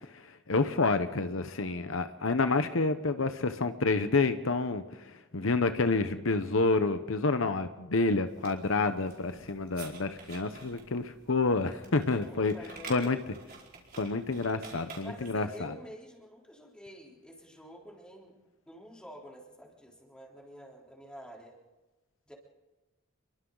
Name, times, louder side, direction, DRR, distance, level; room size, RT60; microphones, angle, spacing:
voice 1, 0.5-12.5 12.9-13.2 14.0-15.7, left 3 dB, 70° left, 9 dB, 1.0 m, -28 dB
sound 1, 8.3-15.5, right 4 dB, 50° right, 4.9 m, -50 dB
voice 2, 12.2-13.1 15.0-18.4 18.7-21.6 22.2-22.3, equal, 5° left, -2 dB, 3.8 m, -49 dB
29.0 x 23.0 x 4.0 m, 1.1 s
head